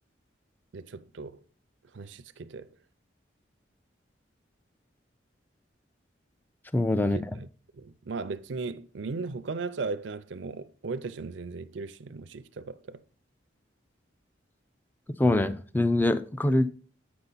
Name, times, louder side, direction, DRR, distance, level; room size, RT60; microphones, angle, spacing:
voice 1, 0.7-1.4 1.9-2.7 7.0-7.5 7.7-13.0, right 4 dB, 80° right, 0.5 m, -37 dB
voice 2, 6.7-7.2 15.1-16.7, left 1 dB, 10° left, 0.4 m, -24 dB
8.7 x 5.6 x 3.9 m
head